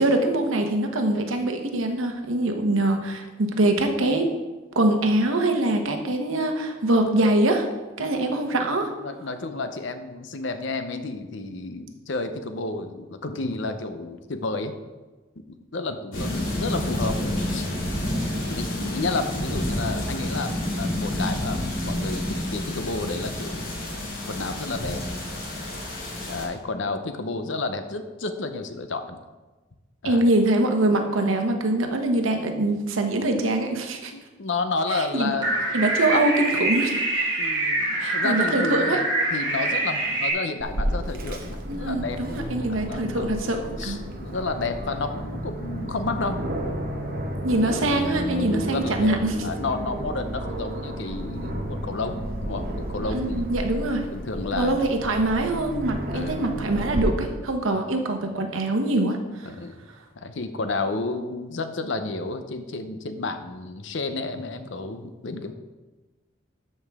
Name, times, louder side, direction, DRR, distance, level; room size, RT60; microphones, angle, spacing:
voice 1, 0.0-4.3 4.7-7.7 8.0-8.9 30.0-34.1 34.9-35.3 35.7-36.9 38.0-39.0 41.7-44.0 47.4-49.3 53.1-54.0 54.5-59.2, right 2 dB, 85° right, 4 dB, 1.1 m, -23 dB
voice 2, 9.0-14.7 15.4-17.2 17.5-17.7 18.5-23.7 24.0-25.0 26.3-29.2 30.0-30.2 34.1-35.5 37.4-39.0 39.3-42.3 42.7-46.4 48.5-53.4 54.1-54.8 56.1-56.4 59.5-59.8 60.2-65.5, left 3 dB, 70° left, 9 dB, 0.7 m, -31 dB
sound 1, 16.1-26.4, left 1 dB, 85° left, 2.6 m, -29 dB
sound 2, 35.4-40.3, right 2 dB, 25° right, 2.5 m, -25 dB
Aircraft, 40.6-57.0, right 1 dB, 45° right, 1.0 m, -32 dB
13.0 x 5.5 x 3.6 m, 1.2 s
head